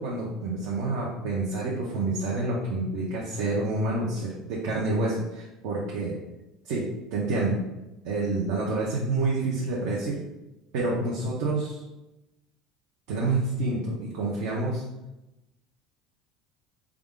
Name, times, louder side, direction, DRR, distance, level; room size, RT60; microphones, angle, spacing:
voice 1, 0.0-6.2 6.6-6.9 7.1-7.6 8.0-10.2 10.7-11.8 13.1-14.8, right 2 dB, 65° right, -4 dB, 0.8 m, -28 dB
4.8 x 2.4 x 3.7 m, 0.96 s
cardioid pair, 175°, 0 cm